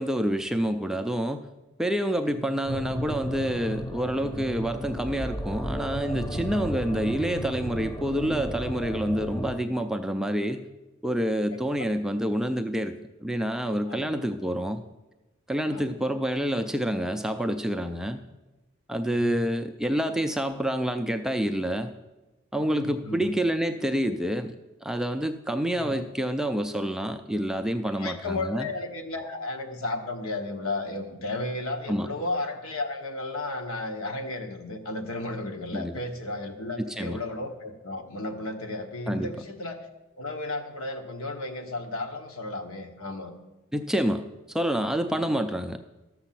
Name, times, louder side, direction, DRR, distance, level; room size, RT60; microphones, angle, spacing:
voice 1, 0.0-1.5 1.8-10.7 11.0-14.8 15.5-18.2 18.9-21.9 22.5-24.5 24.8-28.7 31.9-32.1 35.7-36.0 36.8-37.2 39.1-39.3 43.7-44.2 44.5-45.8, equal, ahead, 6 dB, 0.3 m, -28 dB
sound 1, 2.7-9.6, equal, 15° left, 0.8 m, -34 dB
voice 2, 19.0-19.4 22.6-23.3 25.7-26.0 28.0-39.9 40.2-43.3 45.2-45.4, left 2 dB, 70° left, 4 dB, 1.2 m, -34 dB
12.5 x 6.9 x 5.8 m, 1.1 s
head